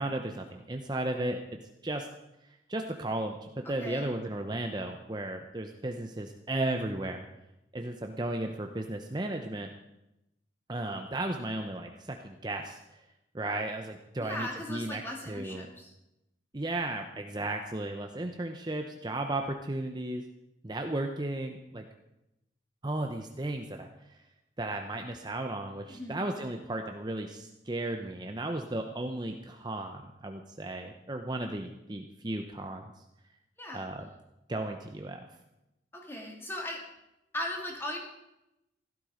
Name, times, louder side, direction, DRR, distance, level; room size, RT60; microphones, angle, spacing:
voice 1, 0.0-1.4 1.8-2.1 2.4-7.3 7.7-9.7 10.7-13.0 13.3-15.0 15.3-15.7 16.5-20.2 20.6-21.9 22.8-23.9 24.6-33.0 33.7-34.1 34.5-35.3, right 2 dB, 25° right, 4 dB, 0.8 m, -35 dB
voice 2, 3.6-4.0 14.2-15.9 25.9-26.2 33.6-33.9 35.9-36.8 37.3-38.0, left 1 dB, 15° left, 0 dB, 2.7 m, -38 dB
16.0 x 12.5 x 5.1 m, 0.91 s
head